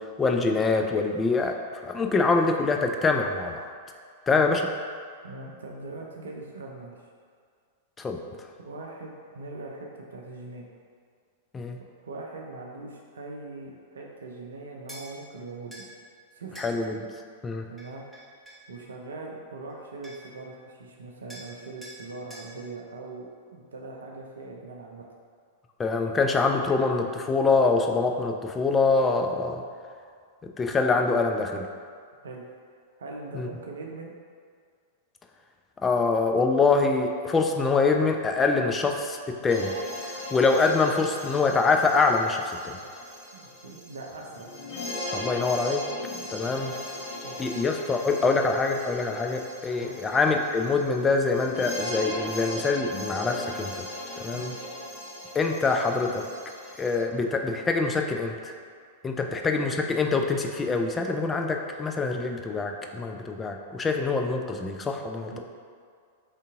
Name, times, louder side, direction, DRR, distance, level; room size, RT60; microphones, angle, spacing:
voice 1, 0.0-3.6 4.3-4.7 8.0-8.2 11.5-11.8 16.6-17.1 17.4-17.6 25.8-29.6 30.6-31.7 33.3-33.5 35.8-39.7 40.3-42.8 45.1-45.8 46.3-46.7 47.4-53.9 54.2-54.5 55.3-56.2 56.8-58.5 59.0-65.4, left 4 dB, 15° left, 3 dB, 0.3 m, -25 dB
voice 2, 5.2-7.0 8.6-10.7 12.0-15.9 16.3-16.6 17.7-18.0 18.7-25.1 32.2-32.4 33.0-34.1 43.3-44.5 47.2-47.7 49.8-50.0 54.3-54.6 65.3-65.4, right 3 dB, 70° right, -1 dB, 0.5 m, -41 dB
sound 1, 14.9-15.1 15.7-15.9 16.5-16.7 17.8-18.6 19.7-19.8 20.0-20.4 21.3-21.5 21.8-22.0 22.3-22.5, right 1 dB, ahead, 1.0 m, -45 dB
sound 2, 39.5-57.0, left 1 dB, 55° left, 1.5 m, -38 dB
3.6 x 2.7 x 3.5 m, 2.1 s
figure-of-eight pair, 95°, 0 cm